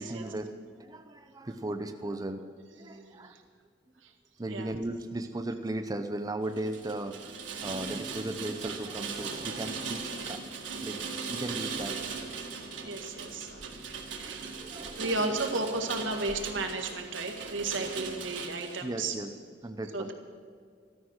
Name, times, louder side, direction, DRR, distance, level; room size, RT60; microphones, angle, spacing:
voice 1, 0.0-3.3 4.4-7.3 7.6-10.4 10.8-11.0 11.3-12.0 14.1-15.2 18.8-19.3 19.6-20.1, right 1 dB, 20° right, 7 dB, 0.6 m, -37 dB
voice 2, 2.8-3.4 4.0-4.1 4.5-4.7 12.8-14.6 15.0-19.1 19.9-20.1, right 3 dB, 90° right, 3 dB, 1.9 m, -34 dB
Rain, 6.5-18.9, right 5 dB, 70° right, 1.8 m, -39 dB
14.0 x 13.0 x 6.4 m, 2.1 s
head